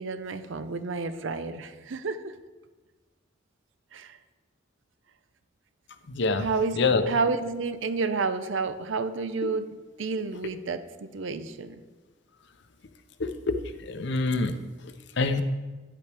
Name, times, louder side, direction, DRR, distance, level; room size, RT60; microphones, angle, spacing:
voice 1, 0.0-2.3 3.9-4.2 6.4-11.8, right 4 dB, 75° right, 11 dB, 0.6 m, -30 dB
voice 2, 6.1-6.5 6.8-7.0 13.2-13.6 13.8-14.5 15.2-15.4, left 3 dB, 60° left, 9 dB, 0.7 m, -25 dB
11.0 x 8.2 x 3.4 m, 1.3 s
head